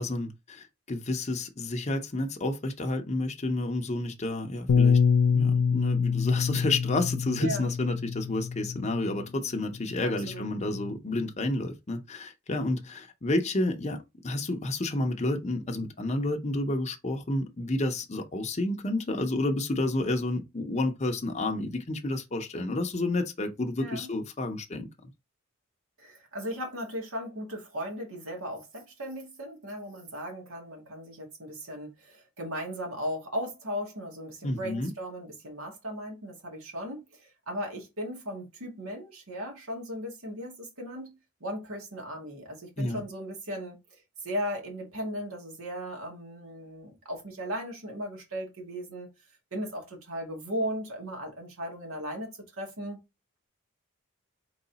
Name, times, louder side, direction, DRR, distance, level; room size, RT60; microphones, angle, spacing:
voice 1, 0.0-5.0 5.3-24.9 34.4-34.9 42.8-43.0, left 2 dB, 30° left, 0.6 m, -30 dB
Bass guitar, 4.7-9.2 10.0-10.9, left 6 dB, 80° left, 0.4 m, -26 dB
voice 2, 10.0-10.4 23.8-24.1 26.0-49.1 49.5-52.3 52.6-53.0, equal, 80° right, 2.0 m, -37 dB
4.0 x 3.1 x 4.0 m
head